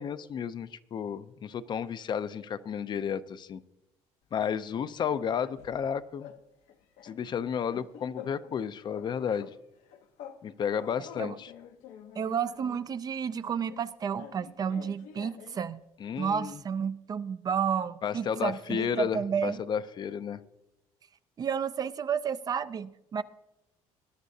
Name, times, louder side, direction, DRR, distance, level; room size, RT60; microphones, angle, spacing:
voice 1, 0.0-3.6 4.3-6.3 7.0-9.5 10.4-11.5 16.0-16.6 18.0-20.4, left 7 dB, 40° left, 0.5 m, -32 dB
sound 1, 4.5-5.9 6.2-6.4 6.7-8.6 8.9-10.4 10.7-12.9 13.7-15.7, left 9 dB, 80° left, 0.9 m, -48 dB
voice 2, 12.2-15.8 16.2-19.6 21.4-23.2, right 7 dB, 35° right, 0.4 m, -31 dB
19.5 x 10.5 x 2.7 m
cardioid pair, 125°, 12 cm